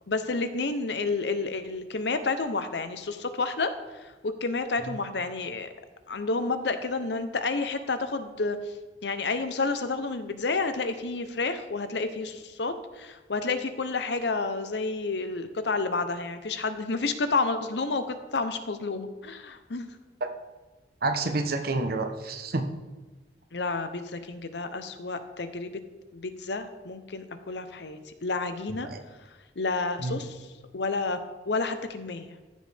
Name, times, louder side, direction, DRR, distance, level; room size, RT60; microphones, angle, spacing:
voice 1, 0.1-3.7 4.0-5.7 6.1-8.6 9.0-19.9 23.5-25.8 26.1-28.9 29.6-30.3 30.7-31.2 31.5-32.3, left 3 dB, 70° left, 9 dB, 0.8 m, -30 dB
voice 2, 21.0-22.6 28.8-29.0 30.0-30.2, right 2 dB, 60° right, 6 dB, 1.0 m, -29 dB
14.0 x 6.4 x 3.5 m, 1.2 s
head